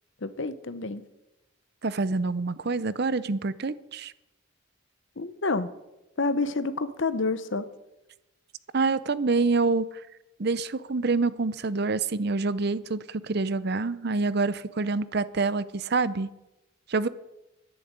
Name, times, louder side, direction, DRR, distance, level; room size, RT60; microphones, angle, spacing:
voice 1, 0.2-1.0 5.2-5.7 6.2-7.6, left 3 dB, 60° left, 13 dB, 0.9 m, -28 dB
voice 2, 1.8-4.1 8.7-9.8 10.4-16.3 16.9-17.1, right 3 dB, 50° right, 16 dB, 0.6 m, -26 dB
11.5 x 10.5 x 8.9 m, 0.95 s
head